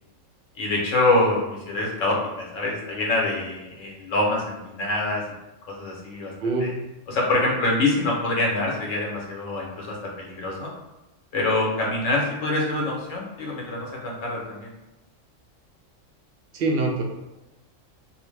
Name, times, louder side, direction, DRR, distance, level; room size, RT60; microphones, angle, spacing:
voice 1, 0.5-5.2 5.7-6.3 6.6-6.7 7.1-10.7 11.3-14.7, left 2 dB, 75° left, -2 dB, 1.1 m, -25 dB
voice 2, 16.5-17.0, right 3 dB, 65° right, 1 dB, 0.6 m, -24 dB
2.9 x 2.0 x 3.1 m, 0.96 s
omnidirectional pair, 1.4 m